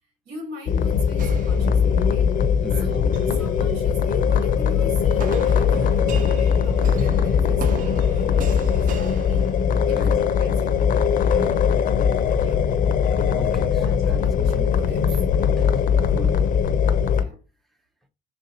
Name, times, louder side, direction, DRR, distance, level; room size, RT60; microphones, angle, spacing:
voice 1, 0.3-2.4 2.8-3.1 3.3-9.5 9.9-10.8 12.4-12.7 13.8-15.1 17.2-17.4, right 1 dB, 90° right, 2.0 m, -39 dB
sound 1, 0.7-17.2, left 7 dB, 55° left, 0.5 m, -20 dB
sound 2, 1.2-2.3 2.9-3.4 5.2-10.0, right 6 dB, 50° right, 0.6 m, -37 dB
voice 2, 2.6-3.0 9.9-10.2 11.3-11.7 13.4-14.2 15.0-15.7 16.1-16.4, equal, ahead, 0.6 m, -36 dB
3.3 x 2.7 x 4.0 m
cardioid pair, 110°, 17 cm